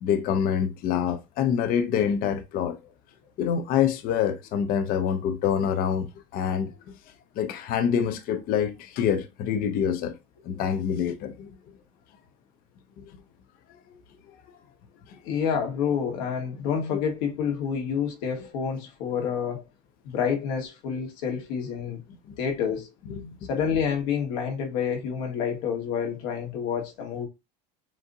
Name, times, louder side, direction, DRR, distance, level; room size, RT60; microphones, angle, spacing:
voice 1, 0.0-2.8 3.4-6.7 7.4-10.2 10.5-11.5 13.0-13.1 15.1-15.2 23.1-23.4, left 8 dB, 45° left, 0.6 m, -26 dB
voice 2, 15.2-19.6 20.0-22.0 22.4-22.9 23.5-27.3, left 7 dB, 75° left, 1.5 m, -28 dB
7.2 x 2.6 x 2.7 m
cardioid pair, 140°, 20 cm